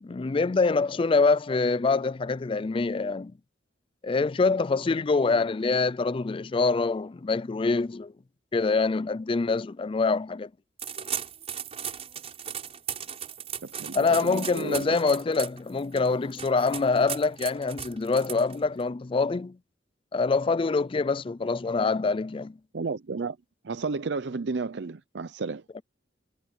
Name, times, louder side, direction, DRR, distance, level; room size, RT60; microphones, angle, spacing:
voice 1, 0.0-3.3 4.0-8.1 8.5-10.5 13.9-19.6 20.1-22.6 25.8-25.9, left 4 dB, 30° left, 0.4 m, -25 dB
sound 1, 10.8-18.8, right 8 dB, 35° right, 6.2 m, -37 dB
voice 2, 13.6-15.0 22.7-23.4 23.6-25.6, right 4 dB, 65° right, 0.6 m, -32 dB
head